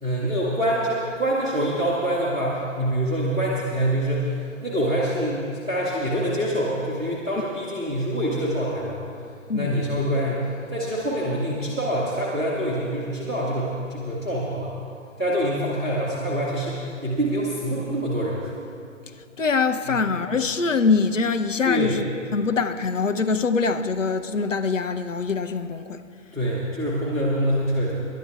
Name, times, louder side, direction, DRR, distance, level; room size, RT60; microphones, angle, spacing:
voice 1, 0.0-9.1 9.5-14.7 15.2-18.5 19.8-20.0 21.6-22.0 26.3-28.0, right 1 dB, 5° right, -13 dB, 0.5 m, -25 dB
voice 2, 19.4-22.0 22.3-26.0, left 4 dB, 70° left, 8 dB, 0.9 m, -23 dB
28.0 x 12.0 x 2.4 m, 2.5 s
figure-of-eight pair, 135°, 40 cm